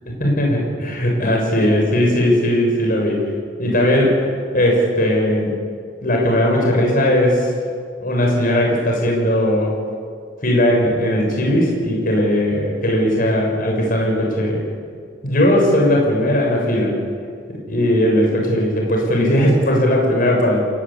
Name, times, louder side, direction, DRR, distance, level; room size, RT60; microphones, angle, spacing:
voice 1, 0.2-3.2 3.6-5.5 6.0-7.5 8.0-9.8 10.4-14.6 15.2-16.9 17.5-20.6, left 1 dB, 50° left, -1 dB, 6.3 m, -18 dB
30.0 x 17.5 x 8.5 m, 2.1 s
head